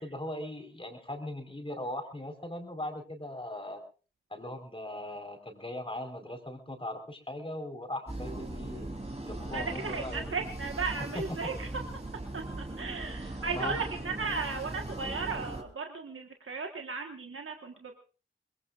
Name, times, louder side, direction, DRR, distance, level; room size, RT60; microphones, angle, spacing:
voice 1, 0.0-3.8 4.3-8.9 9.2-10.4 11.1-11.2 13.2-13.8, left 1 dB, 25° left, 5 dB, 4.4 m, -39 dB
sound 1, 8.1-15.6, right 2 dB, 30° right, 3.6 m, -39 dB
voice 2, 9.5-11.7 12.3-18.0, right 4 dB, 85° right, 3 dB, 1.6 m, -35 dB
24.0 x 20.5 x 2.5 m, 0.36 s
wide cardioid pair, 50°, 21 cm